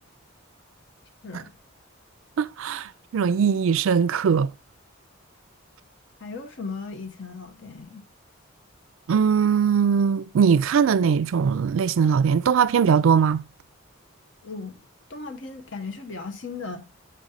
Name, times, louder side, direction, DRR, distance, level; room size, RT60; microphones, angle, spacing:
voice 1, 2.4-4.5 9.1-13.4, right 6 dB, 70° right, 0.3 m, -20 dB
voice 2, 6.2-8.0 14.4-14.8 15.1-16.9, left 4 dB, 60° left, 0.9 m, -37 dB
6.6 x 5.1 x 5.5 m
head